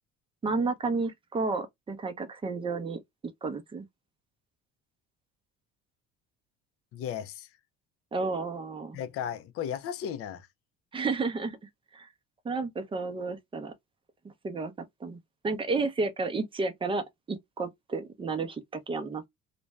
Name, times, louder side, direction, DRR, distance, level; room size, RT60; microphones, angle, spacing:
voice 1, 0.4-3.0 3.4-3.9 8.1-9.0 10.9-11.6 11.9-12.1 12.4-13.7 14.4-15.2 15.4-19.3, right 3 dB, 15° right, 0.6 m, -31 dB
voice 2, 6.9-7.5 8.9-10.5, left 9 dB, 50° left, 0.5 m, -35 dB
2.5 x 2.2 x 3.1 m
cardioid pair, 135°, 30 cm